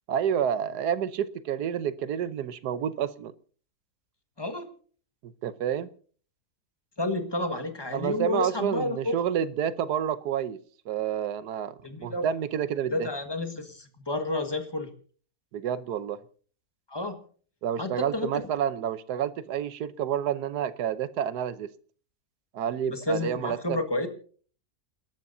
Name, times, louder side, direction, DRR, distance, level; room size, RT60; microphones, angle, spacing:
voice 1, 0.1-3.3 5.2-5.9 7.9-10.6 10.9-13.1 15.5-16.2 17.6-21.7 22.5-23.8, right 9 dB, 90° right, 1.4 m, -29 dB
voice 2, 4.4-4.7 7.0-9.1 11.8-12.3 12.9-14.9 16.9-17.2 17.8-18.4 22.9-24.1, left 2 dB, 15° left, 1.6 m, -30 dB
29.0 x 12.0 x 2.7 m
omnidirectional pair, 1.7 m